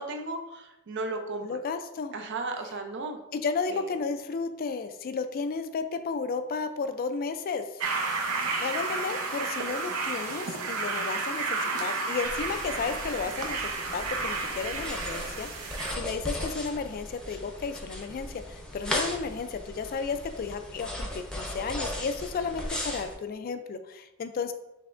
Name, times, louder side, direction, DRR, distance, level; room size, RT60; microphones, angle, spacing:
voice 1, 0.0-1.6 2.1-3.2 3.7-3.9, right 3 dB, 55° right, 5 dB, 0.5 m, -35 dB
voice 2, 1.4-2.1 3.3-7.8 8.6-13.6 13.9-24.5, left 5 dB, 45° left, 9 dB, 0.3 m, -33 dB
sound 1, 7.8-15.9, right 3 dB, 85° right, 0.8 m, -31 dB
sound 2, 12.2-23.1, left 1 dB, 5° left, 0.7 m, -37 dB
5.7 x 3.3 x 2.5 m, 0.95 s
head